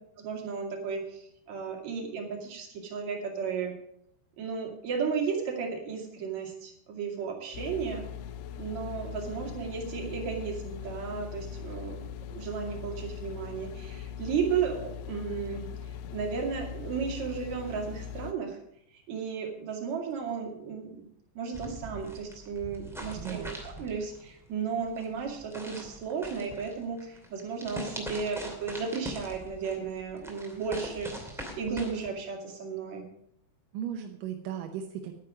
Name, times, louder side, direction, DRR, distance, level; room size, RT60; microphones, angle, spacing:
voice 1, 0.2-3.7 4.4-8.0 8.6-12.0 12.3-18.6 18.9-21.1 21.3-33.1, right 6 dB, 50° right, 1 dB, 3.0 m, -34 dB
sound 1, 7.5-18.3, left 9 dB, 80° left, 2.6 m, -40 dB
sound 2, 21.5-32.1, equal, ahead, 1.0 m, -43 dB
voice 2, 23.2-23.8 33.7-35.1, right 9 dB, 75° right, 4 dB, 2.0 m, -37 dB
11.0 x 9.4 x 6.0 m, 0.74 s
omnidirectional pair, 4.9 m